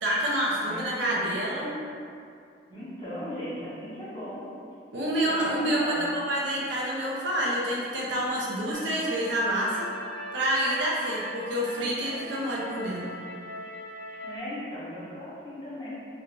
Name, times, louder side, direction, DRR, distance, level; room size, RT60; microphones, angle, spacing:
voice 1, 0.0-1.7 4.9-9.9 10.3-13.0, right 1 dB, 90° right, -5 dB, 0.6 m, -28 dB
voice 2, 0.6-1.3 1.6-1.7 2.7-4.5 5.2-6.1 14.2-15.9, equal, 25° left, -10 dB, 0.8 m, -37 dB
sound 1, 8.7-14.4, equal, 45° left, 1.1 m, -41 dB
2.5 x 2.3 x 3.1 m, 2.4 s
head